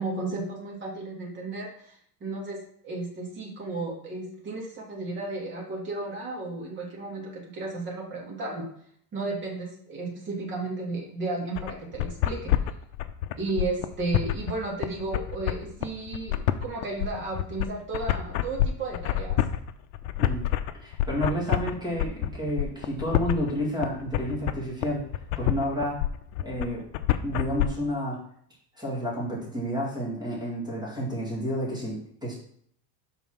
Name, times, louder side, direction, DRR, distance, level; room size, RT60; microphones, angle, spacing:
voice 1, 0.0-8.7 9.1-12.5 13.4-19.4, right 3 dB, 25° right, -2 dB, 1.9 m, -34 dB
sound 1, 11.6-27.7, left 12 dB, 70° left, 0.7 m, -27 dB
voice 2, 20.8-25.0 25.4-26.0 26.4-26.8 27.2-28.2 28.7-32.3, equal, 10° right, -5 dB, 2.0 m, -30 dB
5.5 x 4.1 x 6.0 m, 0.64 s
cardioid pair, 165°, 46 cm